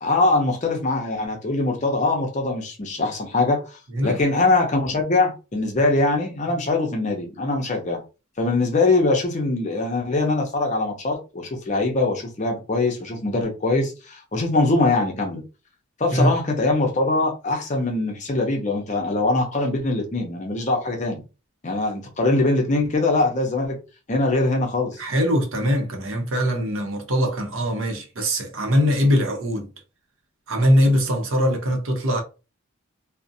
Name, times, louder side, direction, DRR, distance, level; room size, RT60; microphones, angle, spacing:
voice 1, 0.0-8.0 8.4-15.4 16.0-21.2 21.6-23.8 24.1-25.0, left 2 dB, 35° left, 0.5 m, -22 dB
voice 2, 25.0-29.7 30.5-32.2, equal, 70° right, 0.7 m, -21 dB
2.5 x 2.0 x 2.6 m
head